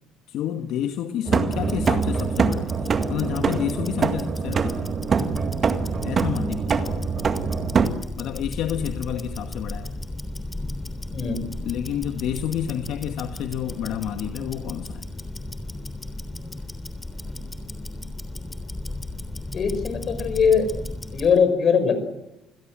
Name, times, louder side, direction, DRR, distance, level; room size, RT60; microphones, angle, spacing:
voice 1, 0.3-4.9 6.0-7.1 8.2-9.9 11.6-15.1, left 10 dB, 65° left, 6 dB, 1.7 m, -30 dB
sound 1, 1.3-7.9, right 5 dB, 30° right, 2.0 m, -24 dB
Tick-tock, 1.4-21.4, left 2 dB, 10° left, 3.4 m, -35 dB
voice 2, 11.1-11.5 19.5-20.7 21.1-22.0, left 6 dB, 40° left, 10 dB, 5.5 m, -21 dB
28.5 x 20.5 x 7.6 m, 0.94 s
cardioid pair, 135°, 0 cm